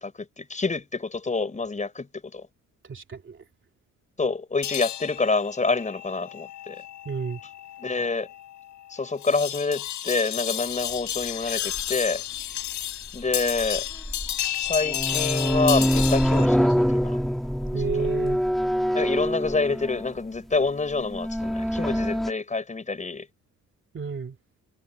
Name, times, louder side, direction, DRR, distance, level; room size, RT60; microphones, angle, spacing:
voice 1, 0.0-2.5 4.2-6.8 7.8-8.3 8.9-12.2 13.1-13.9 14.6-17.2 17.7-18.1 18.9-23.3, left 3 dB, 25° left, 6.5 m, -27 dB
voice 2, 2.8-3.4 7.0-7.4 17.7-18.4 23.9-24.4, right 5 dB, 40° right, 2.8 m, -31 dB
sound 1, 4.6-16.5, left 11 dB, 75° left, 5.5 m, -32 dB
sound 2, 11.8-11.9 13.6-14.3 14.7-20.2 21.0-22.3, equal, ahead, 1.7 m, -24 dB
cardioid pair, 90°, 30 cm